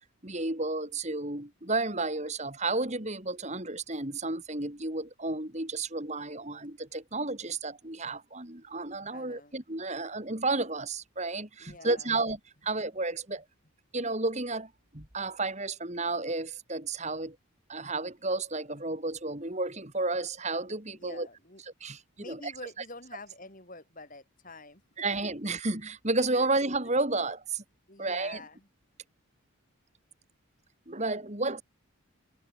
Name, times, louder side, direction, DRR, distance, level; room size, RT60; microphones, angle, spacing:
voice 1, 0.2-13.4 13.9-17.4 17.7-21.3 21.8-22.0 22.3-22.5 25.0-27.6 28.0-28.4 30.9-31.6, right 2 dB, 30° right, 3.1 m, -32 dB
voice 2, 9.1-9.5 11.6-12.2 20.9-21.6 22.2-25.1 26.3-26.5 27.9-28.7, left 2 dB, 40° left, 7.4 m, -47 dB
head